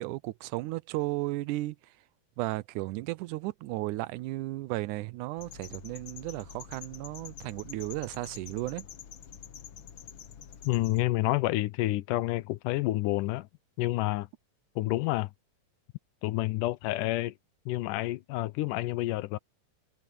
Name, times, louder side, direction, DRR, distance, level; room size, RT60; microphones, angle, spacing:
voice 1, 0.0-1.8 2.4-8.9, right 18 dB, 80° right, 2.1 m, -34 dB
sound 1, 5.4-11.0, left 8 dB, 60° left, 1.4 m, -47 dB
voice 2, 10.7-13.5 13.8-14.3 14.8-15.3 16.2-17.3 17.7-19.4, left 18 dB, 90° left, 2.3 m, -29 dB
omnidirectional pair, 3.6 m